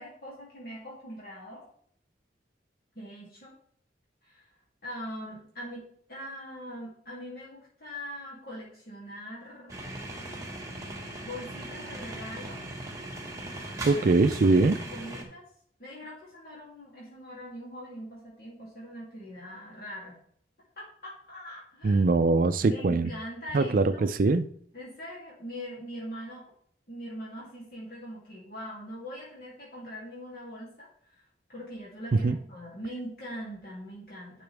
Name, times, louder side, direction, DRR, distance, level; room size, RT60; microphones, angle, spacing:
voice 1, 0.0-1.6 2.9-3.5 4.2-4.5 4.8-9.8 11.2-12.6 13.9-14.1 14.4-15.4 15.8-20.2 20.8-22.0 22.6-24.0 24.7-26.4 26.9-31.2 31.5-34.4, equal, 55° left, -6 dB, 2.7 m, -42 dB
sound 1, 9.7-15.2, right 1 dB, 20° right, 1.5 m, -39 dB
voice 2, 13.9-14.8 21.8-23.1 23.5-24.5 32.1-32.4, right 3 dB, 50° right, 10 dB, 0.4 m, -22 dB
10.5 x 6.0 x 3.4 m, 0.63 s
head